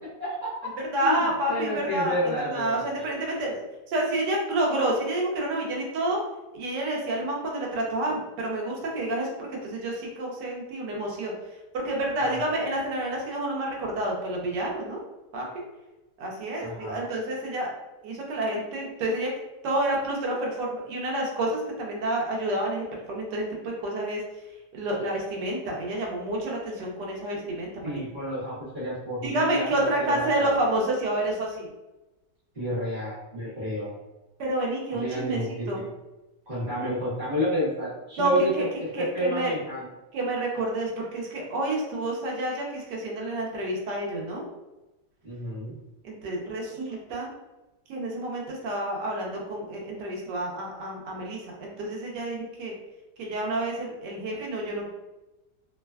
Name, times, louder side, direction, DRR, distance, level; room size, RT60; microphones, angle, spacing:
voice 1, 0.2-0.7 1.0-3.0 12.2-12.4 16.6-17.1 27.8-30.6 32.5-33.9 34.9-35.7 36.5-39.9 45.2-45.7, equal, 35° right, -9 dB, 0.9 m, -30 dB
voice 2, 0.9-6.2 6.5-11.3 11.7-15.0 15.3-15.6 16.2-17.7 18.0-19.3 19.6-24.2 24.7-28.0 29.2-31.7 34.4-35.4 35.7-35.9 38.2-38.6 38.9-39.5 40.1-44.5 46.0-47.3 47.9-52.7 53.2-54.9, right 1 dB, 75° right, -1 dB, 1.3 m, -29 dB
3.2 x 2.1 x 2.2 m, 1.0 s
omnidirectional pair, 1.9 m